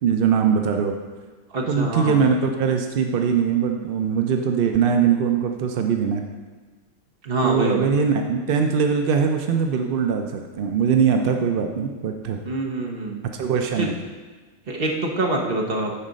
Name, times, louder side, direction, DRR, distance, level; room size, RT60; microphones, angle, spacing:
voice 1, 0.0-0.9 1.7-6.2 7.4-12.4 13.4-13.9, right 6 dB, 65° right, 4 dB, 0.5 m, -21 dB
voice 2, 1.5-2.2 7.2-7.9 12.4-13.2 13.8-13.9 14.7-15.9, right 2 dB, 45° right, 0 dB, 1.1 m, -25 dB
9.9 x 4.1 x 5.1 m, 1.4 s
omnidirectional pair, 1.6 m